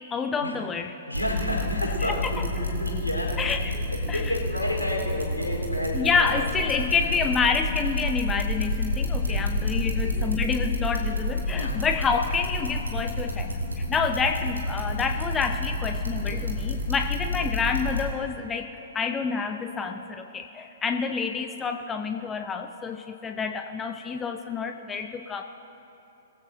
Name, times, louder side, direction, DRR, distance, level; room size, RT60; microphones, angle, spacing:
voice 1, 0.1-0.9 2.0-2.4 3.4-4.3 5.9-25.4, left 5 dB, 15° left, 6 dB, 0.5 m, -28 dB
voice 2, 1.1-3.5 3.9-7.1 9.2-10.3 11.0-11.1 11.5-11.8 16.2-16.5 17.4-17.5, left 1 dB, 85° left, -2 dB, 3.9 m, -32 dB
sound 1, 1.1-18.0, left 1 dB, 80° right, 2.2 m, -28 dB
22.0 x 15.0 x 2.7 m, 3.0 s
figure-of-eight pair, 115°, 0 cm